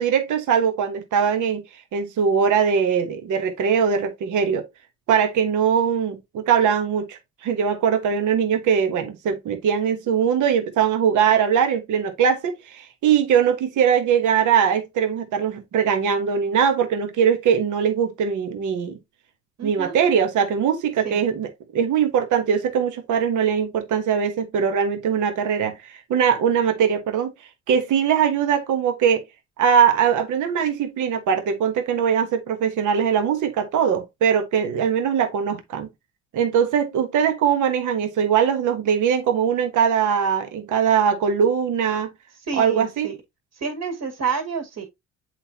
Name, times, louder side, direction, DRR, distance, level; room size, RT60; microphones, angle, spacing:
voice 1, 0.0-1.6 1.9-4.7 5.1-19.0 19.6-27.3 27.7-29.2 29.6-35.9 36.3-42.1 42.6-43.1, right 7 dB, 80° right, 1.2 m, -21 dB
voice 2, 19.6-20.0 21.0-21.2 42.5-43.2 43.5-44.9, right 6 dB, 60° right, 2.1 m, -29 dB
7.7 x 4.4 x 2.8 m
cardioid pair, 90°, 30 cm